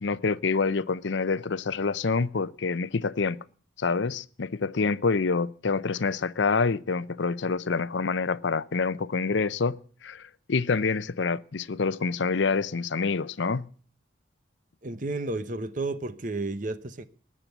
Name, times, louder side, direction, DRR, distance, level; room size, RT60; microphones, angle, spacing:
voice 1, 0.0-3.4 3.8-13.7, left 4 dB, 70° left, 0.6 m, -27 dB
voice 2, 14.8-17.0, right 2 dB, 40° right, 0.9 m, -32 dB
19.0 x 7.6 x 7.9 m
head